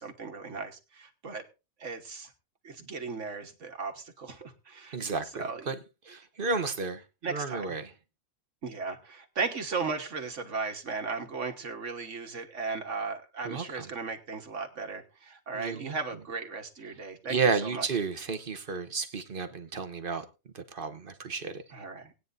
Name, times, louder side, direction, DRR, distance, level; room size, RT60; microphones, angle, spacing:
voice 1, 0.0-1.5 1.8-2.3 2.6-5.7 7.2-7.7 8.6-17.9 21.7-22.1, right 4 dB, 65° right, 1.7 m, -36 dB
voice 2, 4.9-5.8 6.1-7.0 7.3-7.9 13.4-13.9 15.5-16.0 17.3-20.2 20.5-21.6, right 4 dB, 45° right, 1.0 m, -32 dB
20.0 x 9.3 x 2.6 m
omnidirectional pair, 1.4 m